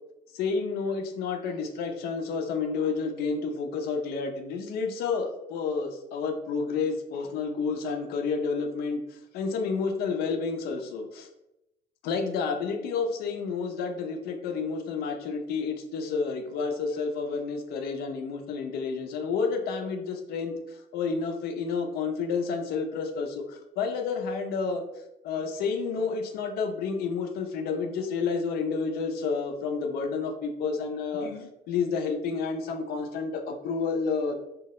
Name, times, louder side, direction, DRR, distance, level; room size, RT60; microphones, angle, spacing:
voice 1, 0.3-11.3 12.0-24.8 25.2-34.4, left 5 dB, 70° left, 5 dB, 0.4 m, -30 dB
2.2 x 2.0 x 2.8 m, 0.88 s
cardioid pair, 110°, 17 cm